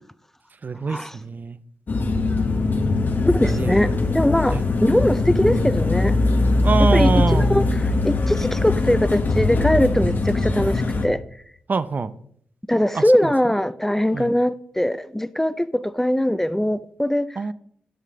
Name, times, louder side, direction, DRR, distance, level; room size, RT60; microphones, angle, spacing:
voice 1, 0.6-1.6 3.3-3.8 4.5-4.6 6.6-7.5 11.7-12.1 12.9-13.3 14.1-14.3 17.4-17.5, right 4 dB, 45° right, 0.5 m, -25 dB
sound 1, 1.9-11.1, left 2 dB, 50° left, 1.2 m, -21 dB
voice 2, 3.2-6.1 6.9-11.2 12.7-17.4, left 1 dB, 10° left, 0.4 m, -21 dB
9.0 x 6.6 x 3.7 m
supercardioid pair, 45°, 4 cm